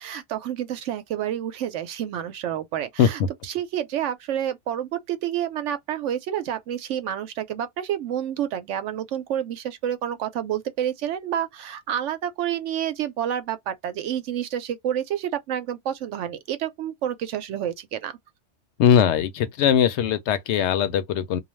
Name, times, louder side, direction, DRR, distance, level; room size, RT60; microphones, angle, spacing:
voice 1, 0.0-3.2 3.5-18.1, right 10 dB, 80° right, 0.9 m, -29 dB
voice 2, 3.0-3.3 18.8-21.4, left 8 dB, 75° left, 0.8 m, -20 dB
2.4 x 2.2 x 3.0 m
omnidirectional pair, 1.2 m